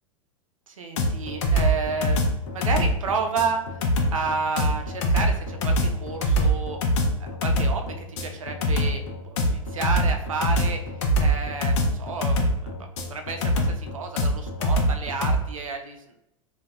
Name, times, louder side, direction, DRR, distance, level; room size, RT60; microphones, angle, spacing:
voice 1, 0.7-3.6 4.1-6.8 7.2-10.8 11.2-12.7 13.1-16.2, right 4 dB, 75° right, 5 dB, 0.5 m, -31 dB
sound 1, 1.0-15.4, equal, 60° left, 0.6 m, -23 dB
3.7 x 2.2 x 2.2 m, 0.83 s
figure-of-eight pair, 90°, 17 cm